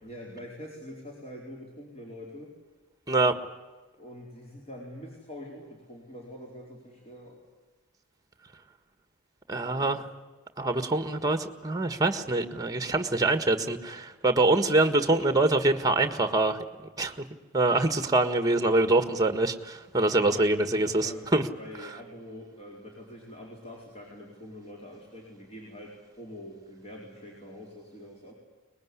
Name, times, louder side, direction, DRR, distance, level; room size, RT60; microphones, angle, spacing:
voice 1, 0.0-2.5 4.0-7.4 9.8-10.1 20.0-28.3, left 1 dB, 30° left, -2 dB, 4.5 m, -45 dB
voice 2, 9.5-10.1 10.6-16.6 17.0-17.1 17.5-21.4, right 2 dB, 15° right, 10 dB, 1.6 m, -24 dB
23.5 x 20.5 x 9.8 m, 1.3 s
head